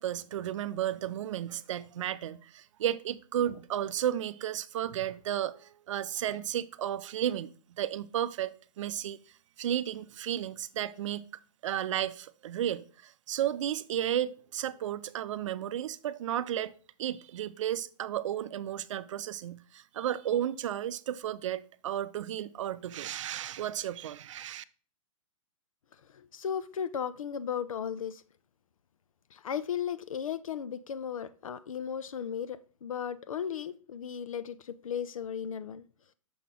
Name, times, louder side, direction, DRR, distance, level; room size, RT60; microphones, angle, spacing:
voice 1, 0.0-9.2 9.6-11.2 11.6-16.7 17.0-24.6, right 11 dB, 65° right, 0.5 m, -33 dB
voice 2, 26.1-28.2 29.3-35.8, left 8 dB, 80° left, 0.6 m, -36 dB
6.7 x 4.1 x 3.5 m
hypercardioid pair, 130°, 17 cm